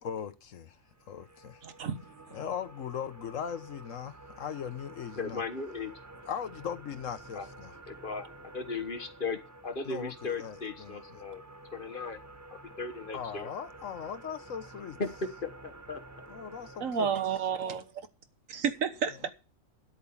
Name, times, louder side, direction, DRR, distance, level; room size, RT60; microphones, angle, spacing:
voice 1, 0.0-0.8 1.1-1.6 2.3-5.4 6.3-7.8 9.8-11.2 13.1-15.0 16.3-17.1 19.2-19.3, left 8 dB, 75° left, 1.3 m, -39 dB
sound 1, 0.9-17.6, right 2 dB, 15° right, 1.0 m, -51 dB
voice 2, 1.6-2.0 2.3-2.4 16.8-17.9 18.5-19.3, right 7 dB, 75° right, 1.6 m, -31 dB
voice 3, 5.2-5.9 7.3-7.4 7.9-8.3 8.5-11.4 11.7-12.2 12.8-13.5 15.0-15.1 15.4-16.0, left 4 dB, 40° left, 1.4 m, -36 dB
10.0 x 8.6 x 7.1 m
omnidirectional pair, 1.4 m